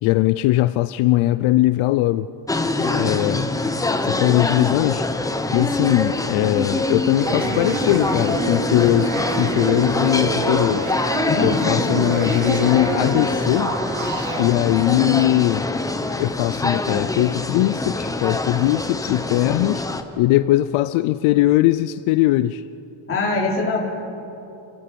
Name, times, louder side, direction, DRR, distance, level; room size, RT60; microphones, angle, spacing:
voice 1, 0.0-2.3 3.0-3.5 4.0-5.1 5.5-10.9 11.4-13.7 14.4-15.7 16.2-19.9 20.2-22.6, left 16 dB, 80° left, 13 dB, 0.7 m, -20 dB
sound 1, 2.5-20.0, left 2 dB, 5° left, 0.9 m, -24 dB
voice 2, 2.8-3.5 11.2-11.6 23.1-23.8, left 3 dB, 25° left, -3 dB, 4.3 m, -23 dB
sound 2, 7.2-14.4, right 7 dB, 85° right, 2.3 m, -29 dB
29.0 x 17.0 x 6.9 m, 2.9 s
cardioid pair, 155°, 49 cm